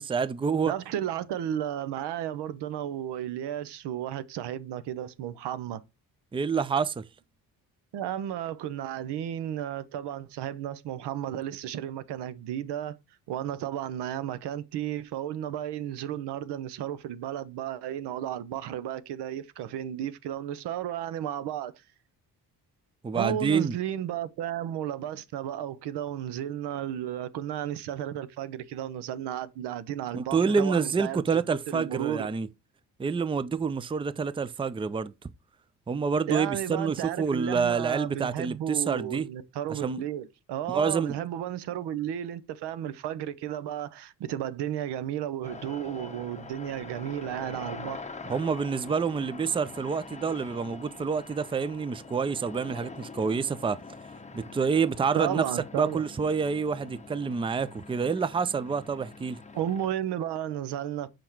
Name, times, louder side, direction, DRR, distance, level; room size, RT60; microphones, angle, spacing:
voice 1, 0.0-0.7 6.3-7.1 23.0-23.8 30.1-32.5 33.0-35.1 35.9-39.3 39.7-40.0 40.7-41.1 48.2-53.8 54.3-55.4 55.8-59.4, right 5 dB, 15° right, 0.5 m, -28 dB
voice 2, 0.7-5.8 7.9-13.0 13.3-21.7 23.1-32.3 36.3-48.0 55.2-56.0 59.5-61.1, right 11 dB, 85° right, 0.8 m, -33 dB
sound 1, 45.4-59.9, left 4 dB, 15° left, 0.9 m, -44 dB
5.6 x 5.2 x 4.6 m
cardioid pair, 75°, 40 cm